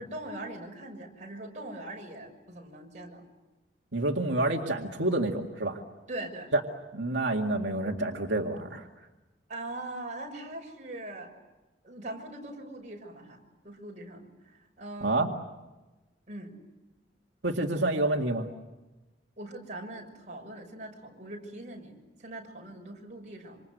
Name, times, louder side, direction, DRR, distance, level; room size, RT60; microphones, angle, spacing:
voice 1, 0.0-3.2 6.1-6.5 9.5-11.3 11.8-13.4 13.6-15.2 16.3-16.6 19.4-23.6, right 1 dB, 40° right, 1 dB, 6.4 m, -41 dB
voice 2, 3.9-5.8 6.5-6.6 6.9-8.8 15.0-15.3 17.4-18.5, right 2 dB, 85° right, 1 dB, 2.2 m, -28 dB
27.0 x 27.0 x 8.0 m, 1.1 s
head